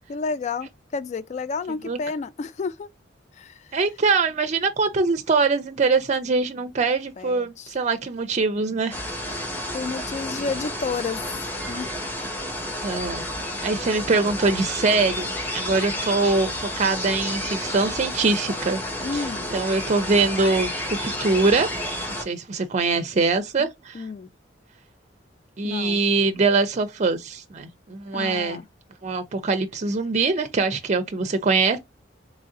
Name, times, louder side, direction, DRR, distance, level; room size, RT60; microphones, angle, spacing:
voice 1, 0.0-2.9 3.3-3.7 7.2-7.7 9.7-11.4 11.7-11.9 19.0-19.5 23.9-24.3 25.6-26.0 28.1-28.7, left 4 dB, 40° left, 0.3 m, -31 dB
voice 2, 3.7-9.0 12.8-13.2 13.6-18.8 19.1-19.2 19.5-21.7 22.1-24.0 25.6-28.6 29.0-31.8, right 3 dB, 40° right, 0.5 m, -23 dB
sound 1, 8.9-22.2, left 1 dB, 10° left, 1.2 m, -31 dB
3.7 x 3.0 x 2.5 m
head